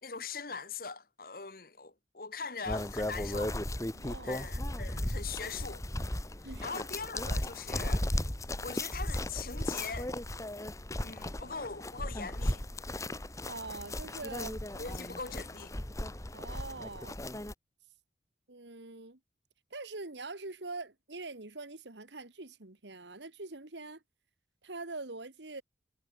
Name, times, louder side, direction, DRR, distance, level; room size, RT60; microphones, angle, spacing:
voice 1, 0.0-3.6 4.2-5.8 6.6-8.1 8.6-10.1 11.0-12.7 14.8-15.7, left 5 dB, 55° left, 1.7 m, -41 dB
sound 1, 2.7-17.5, left 1 dB, 20° left, 1.5 m, -36 dB
voice 2, 3.9-4.5 6.4-6.8 7.3-7.4 13.5-15.0 16.3-17.2 18.5-19.2 19.7-24.0 24.6-25.6, right 3 dB, 90° right, 2.1 m, -44 dB
head